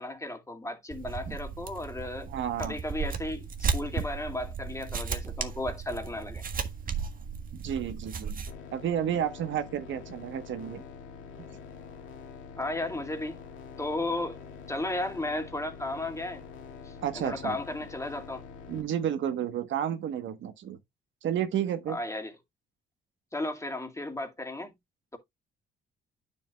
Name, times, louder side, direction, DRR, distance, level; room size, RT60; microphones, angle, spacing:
voice 1, 0.0-2.3 2.6-6.4 12.6-13.4 13.8-14.4 14.7-16.4 16.8-18.4 21.9-22.3 23.3-24.7, left 2 dB, 15° left, 2.3 m, -34 dB
sound 1, 0.9-8.5, right 6 dB, 45° right, 1.5 m, -35 dB
voice 2, 2.3-2.8 7.5-8.4 8.7-10.8 17.0-17.6 18.7-20.8 21.2-22.0, right 9 dB, 70° right, 1.3 m, -31 dB
sound 2, 8.5-18.8, left 6 dB, 85° left, 2.3 m, -46 dB
9.6 x 6.9 x 2.4 m
cardioid pair, 90°, 20 cm